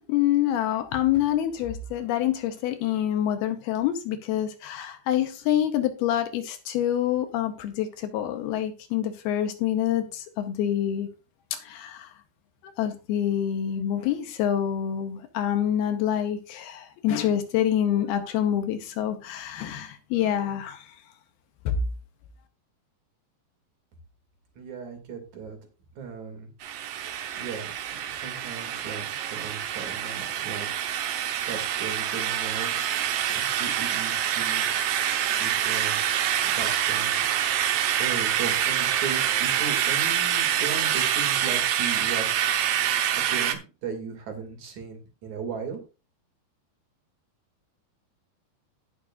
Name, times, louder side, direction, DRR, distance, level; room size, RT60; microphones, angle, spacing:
voice 1, 0.1-11.1 11.5-12.1 12.8-20.9 21.7-21.8, left 11 dB, 75° left, 7 dB, 2.7 m, -26 dB
voice 2, 24.6-25.6 26.0-26.5 27.3-27.7 28.1-30.8 31.5-32.9 33.3-34.6 35.4-37.2 38.0-42.5 43.3-45.8, right 6 dB, 50° right, 4 dB, 3.5 m, -37 dB
sound 1, 26.6-43.5, right 10 dB, 70° right, 2.3 m, -26 dB
18.5 x 6.6 x 2.5 m, 0.31 s
omnidirectional pair, 4.7 m